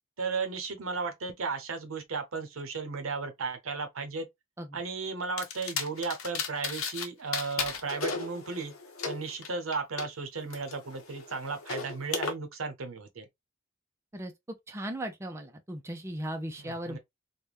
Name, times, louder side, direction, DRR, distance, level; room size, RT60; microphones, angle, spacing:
voice 1, 0.2-4.3 4.7-8.7 9.0-13.3 16.6-17.0, right 4 dB, 85° right, 0.8 m, -35 dB
sound 1, 5.4-7.1 7.3-10.1 10.5-12.3, left 5 dB, 85° left, 0.7 m, -35 dB
voice 2, 14.1-17.0, right 1 dB, 15° right, 0.4 m, -37 dB
3.4 x 2.2 x 2.3 m
head